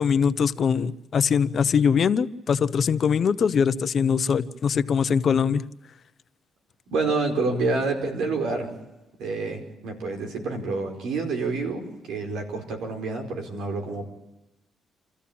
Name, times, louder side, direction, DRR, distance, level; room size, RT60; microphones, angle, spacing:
voice 1, 0.0-5.6, left 6 dB, 50° left, 14 dB, 0.9 m, -22 dB
voice 2, 6.9-8.7 9.2-14.0, right 3 dB, 80° right, 4 dB, 4.8 m, -28 dB
28.0 x 14.0 x 8.7 m, 0.97 s
cardioid pair, 90°, 0 cm